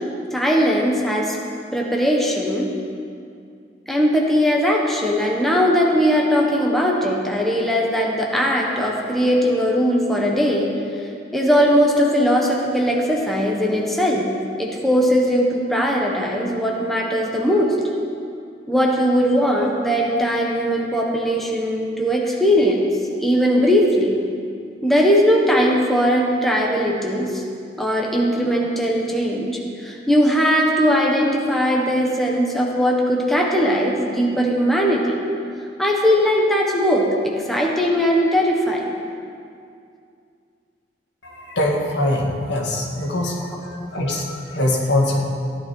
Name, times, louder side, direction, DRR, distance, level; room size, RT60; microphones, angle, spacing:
voice 1, 0.3-1.4 1.7-2.7 3.9-10.7 11.3-14.3 14.6-17.8 18.7-22.9 23.2-24.2 24.8-27.4 27.8-35.2 35.8-38.9, equal, ahead, -2 dB, 1.3 m, -19 dB
voice 2, 41.2-45.2, left 1 dB, 70° left, -2 dB, 2.1 m, -23 dB
15.5 x 10.5 x 4.6 m, 2.4 s
head